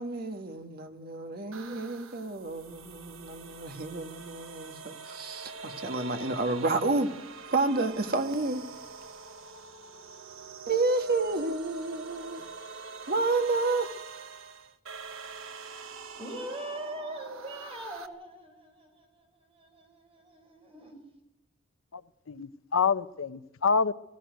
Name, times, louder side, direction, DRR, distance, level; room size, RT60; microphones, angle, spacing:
voice 1, 0.0-7.2 7.5-8.6 10.6-12.5 13.1-13.9, right 3 dB, 50° right, 1.5 m, -30 dB
sound 1, 1.5-18.1, right 4 dB, 90° right, 1.3 m, -44 dB
voice 2, 16.2-21.0, right 1 dB, 30° right, 4.7 m, -42 dB
voice 3, 22.3-23.9, left 5 dB, 90° left, 0.7 m, -27 dB
18.0 x 15.5 x 9.2 m
head